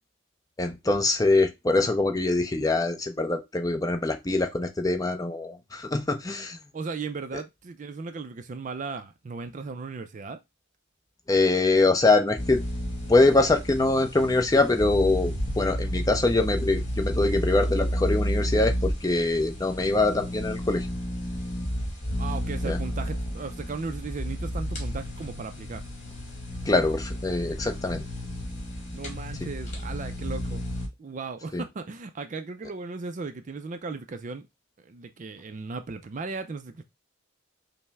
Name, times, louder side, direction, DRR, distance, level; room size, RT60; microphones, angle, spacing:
voice 1, 0.6-6.6 11.3-12.6 13.1-20.9 22.6-22.8 26.7-28.0 31.5-31.6, left 2 dB, 15° left, 0.5 m, -23 dB
voice 2, 6.7-10.4 22.2-25.8 28.9-30.6 31.0-34.5 34.8-36.8, right 4 dB, 40° right, 0.4 m, -36 dB
sound 1, 12.4-30.9, equal, 35° left, 1.5 m, -31 dB
5.4 x 2.1 x 3.4 m
head